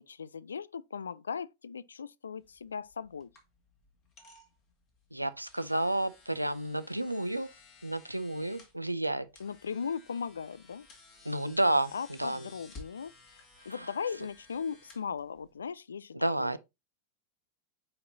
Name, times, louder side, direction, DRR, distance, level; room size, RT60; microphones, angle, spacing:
voice 1, 0.0-3.3 9.4-10.9 11.9-16.6, left 6 dB, 70° left, 0.3 m, -38 dB
sound 1, 2.4-15.7, left 3 dB, 35° left, 2.1 m, -56 dB
voice 2, 5.1-7.5 7.8-9.3 11.2-11.9 12.2-12.5 13.7-13.9 16.1-16.6, right 1 dB, 85° right, 0.5 m, -30 dB
9.3 x 4.2 x 2.6 m
figure-of-eight pair, 90°, 0 cm